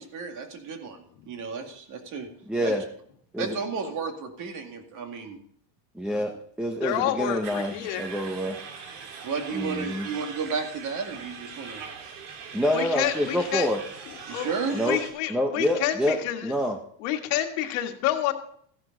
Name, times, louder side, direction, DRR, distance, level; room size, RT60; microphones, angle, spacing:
voice 1, 0.0-2.3 2.6-2.7 3.4-5.4 9.2-11.8 14.3-14.8, right 5 dB, 45° right, 4 dB, 2.2 m, -33 dB
voice 2, 2.5-2.8 3.3-3.6 5.9-8.6 9.5-10.1 12.5-13.8 14.7-15.0 15.3-16.2 16.4-16.8, equal, ahead, 4 dB, 0.7 m, -27 dB
voice 3, 6.8-8.1 12.7-13.7 14.1-16.5 17.0-18.3, left 13 dB, 65° left, 5 dB, 1.7 m, -29 dB
sound 1, 7.4-15.1, right 5 dB, 80° right, 3.1 m, -41 dB
14.5 x 11.0 x 3.9 m, 0.63 s
cardioid pair, 155°, 45 cm